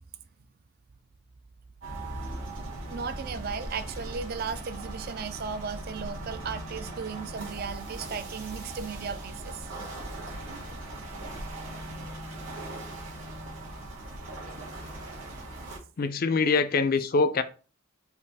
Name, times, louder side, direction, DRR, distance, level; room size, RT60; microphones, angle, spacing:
sound 1, 1.8-15.8, right 1 dB, 65° right, 1.9 m, -39 dB
voice 1, 2.9-9.7, right 6 dB, 45° right, 0.4 m, -36 dB
voice 2, 16.0-17.4, left 4 dB, 40° left, 0.4 m, -24 dB
5.4 x 2.5 x 3.4 m
head